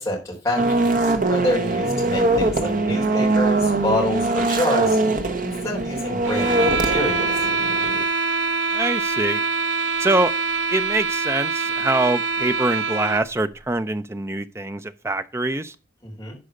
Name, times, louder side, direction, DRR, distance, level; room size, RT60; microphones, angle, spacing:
voice 1, 0.0-5.0 5.4-7.4 16.0-16.4, left 1 dB, 15° left, 3.6 m, -27 dB
sound 1, 0.6-8.0, right 2 dB, 45° right, 1.1 m, -22 dB
sound 2, 6.2-13.3, right 4 dB, 85° right, 0.8 m, -24 dB
voice 2, 8.7-9.4 10.0-10.3 10.7-15.7, right 2 dB, 15° right, 0.5 m, -24 dB
11.5 x 4.8 x 5.2 m
head